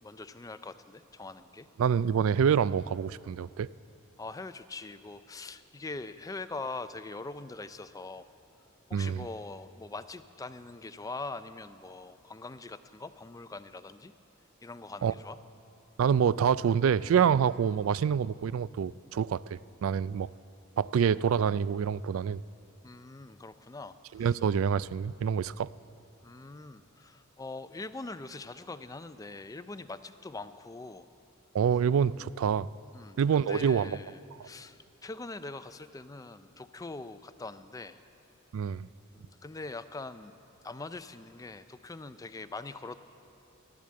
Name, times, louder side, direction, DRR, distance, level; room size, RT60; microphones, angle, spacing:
voice 1, 0.0-1.7 4.2-8.3 8.9-14.1 14.6-15.4 22.8-24.4 26.2-31.1 32.0-32.2 32.9-38.0 39.1-40.4 40.6-43.0, left 3 dB, 15° left, 12 dB, 0.4 m, -43 dB
voice 2, 1.8-3.7 8.9-9.3 15.0-15.1 16.0-20.3 20.8-22.4 24.1-25.7 31.5-32.7 33.2-34.0 34.4-34.5 38.5-38.9, right 7 dB, 70° right, 19 dB, 0.3 m, -26 dB
16.0 x 12.0 x 7.6 m, 2.6 s
head